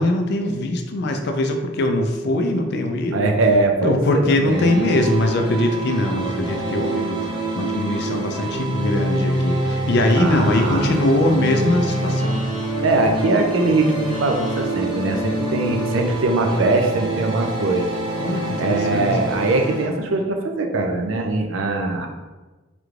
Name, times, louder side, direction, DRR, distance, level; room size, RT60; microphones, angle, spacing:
voice 1, 0.0-3.3 3.8-12.4 18.2-19.1, left 1 dB, 55° left, 5 dB, 0.4 m, -21 dB
voice 2, 3.1-4.7 10.2-11.0 12.8-17.9 18.6-22.1, right 2 dB, 70° right, 3 dB, 0.5 m, -21 dB
sound 1, 4.5-19.9, right 1 dB, 25° right, 0.6 m, -26 dB
3.3 x 3.1 x 2.4 m, 1.2 s
head